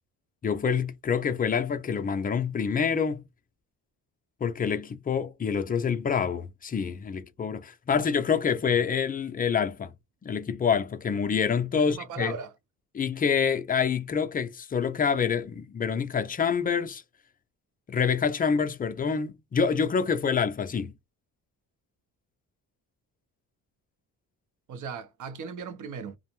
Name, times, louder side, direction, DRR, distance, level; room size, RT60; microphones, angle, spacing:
voice 1, 0.4-3.2 4.4-9.9 10.2-12.3 12.9-17.0 17.9-20.9, left 6 dB, 25° left, 0.4 m, -27 dB
voice 2, 11.7-12.5 24.7-26.2, right 6 dB, 55° right, 0.7 m, -37 dB
2.6 x 2.0 x 3.0 m
cardioid pair, 105°, 36 cm